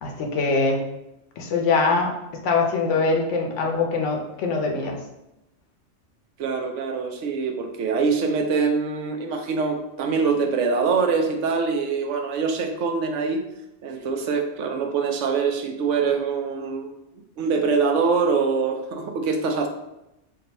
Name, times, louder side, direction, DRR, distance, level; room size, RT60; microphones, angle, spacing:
voice 1, 0.0-0.8 1.4-2.1 2.4-5.0, left 4 dB, 80° left, 2 dB, 1.0 m, -23 dB
voice 2, 6.4-13.4 13.8-16.9 17.4-19.7, right 5 dB, 90° right, 4 dB, 0.9 m, -24 dB
3.8 x 2.3 x 4.0 m, 0.90 s
omnidirectional pair, 1.2 m